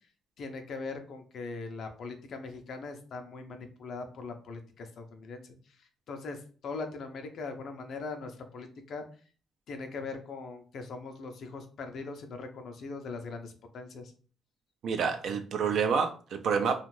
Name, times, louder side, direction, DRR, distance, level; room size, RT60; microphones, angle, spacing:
voice 1, 0.4-9.1 9.7-14.1, left 4 dB, 65° left, 6 dB, 0.5 m, -41 dB
voice 2, 14.8-16.8, right 6 dB, 70° right, 7 dB, 0.4 m, -28 dB
2.5 x 2.4 x 3.1 m, 0.40 s
cardioid pair, 90°, 0 cm